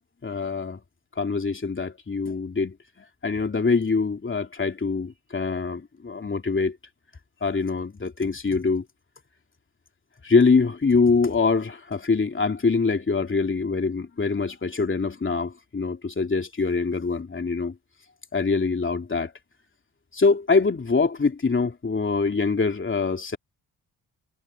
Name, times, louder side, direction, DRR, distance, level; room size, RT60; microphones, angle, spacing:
voice 1, 0.2-0.8 1.2-2.7 3.2-6.8 7.4-8.8 10.2-17.7 18.3-19.3 20.1-23.4, left 4 dB, 30° left, 3.0 m, -24 dB
supercardioid pair, 55°, 38 cm